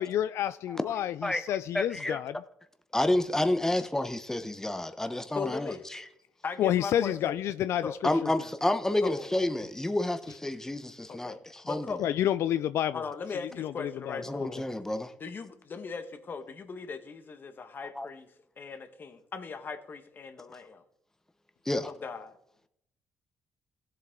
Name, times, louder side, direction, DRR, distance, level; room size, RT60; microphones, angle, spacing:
voice 1, 0.0-2.4 6.6-7.9 8.2-8.3 12.0-13.0 13.4-14.2, left 11 dB, 70° left, 0.4 m, -29 dB
voice 2, 1.7-2.2 2.9-6.0 8.0-11.9 14.3-15.1 18.0-18.1 21.7-21.9, left 1 dB, 10° left, 1.0 m, -29 dB
voice 3, 5.3-5.9 6.4-7.3 7.8-7.9 9.0-9.3 11.1-12.0 12.9-14.6 15.2-20.8 21.9-22.4, left 5 dB, 45° left, 1.6 m, -39 dB
16.0 x 7.7 x 3.8 m
supercardioid pair, 70°, 5 cm